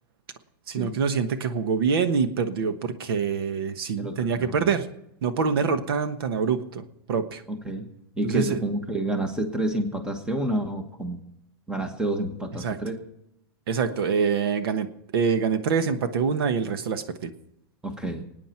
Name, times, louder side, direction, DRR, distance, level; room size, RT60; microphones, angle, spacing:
voice 1, 0.7-4.9 5.2-7.4 8.2-8.6 12.6-12.8 13.7-14.9 15.1-17.3, right 6 dB, 80° right, 10 dB, 1.3 m, -25 dB
voice 2, 4.0-4.7 7.5-7.9 8.2-11.2 11.7-13.0 17.8-18.2, right 1 dB, 5° right, 6 dB, 1.3 m, -29 dB
27.0 x 9.3 x 4.5 m, 0.83 s
supercardioid pair, 165°, 12 cm